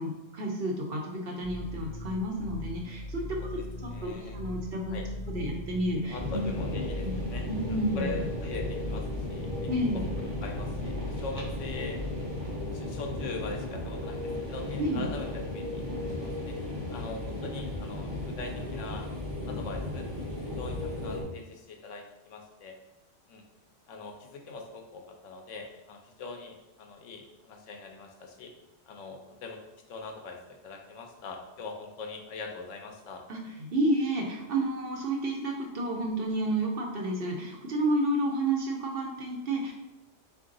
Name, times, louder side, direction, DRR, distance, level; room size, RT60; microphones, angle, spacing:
voice 1, 0.0-3.2 3.5-5.0 5.3-6.5 7.0-8.2 9.7-10.1 14.8-15.1 33.3-39.7, right 1 dB, 60° right, 1 dB, 0.8 m, -31 dB
sound 1, 1.4-12.3, left 1 dB, 55° left, 0.6 m, -39 dB
voice 2, 3.9-4.4 4.9-5.0 6.0-9.7 10.4-12.3 12.7-16.5 16.9-19.1 19.5-20.1 20.6-22.7 23.3-23.4 23.9-28.5 28.9-29.6 29.9-33.2, left 4 dB, 85° left, 3 dB, 1.0 m, -42 dB
sound 2, 6.1-21.2, left 2 dB, 25° right, 0.8 m, -35 dB
3.7 x 2.6 x 3.8 m, 0.95 s
omnidirectional pair, 1.3 m